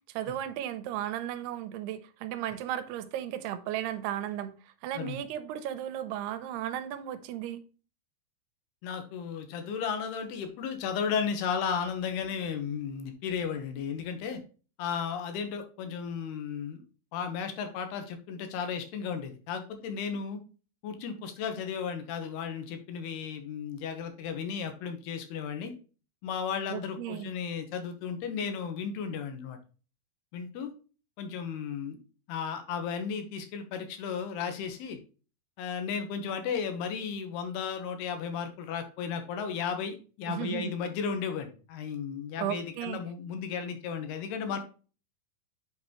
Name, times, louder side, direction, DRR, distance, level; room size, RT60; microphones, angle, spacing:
voice 1, 0.1-4.5 4.8-7.6 26.7-27.3 40.3-40.7 42.4-43.0, right 11 dB, 85° right, 2.8 m, -35 dB
voice 2, 8.8-14.4 14.8-16.8 17.1-20.4 20.8-25.7 26.2-29.6 30.3-30.7 31.2-32.0 32.3-35.0 35.6-44.6, left 6 dB, 85° left, 3.2 m, -34 dB
7.9 x 5.3 x 3.1 m
omnidirectional pair, 4.5 m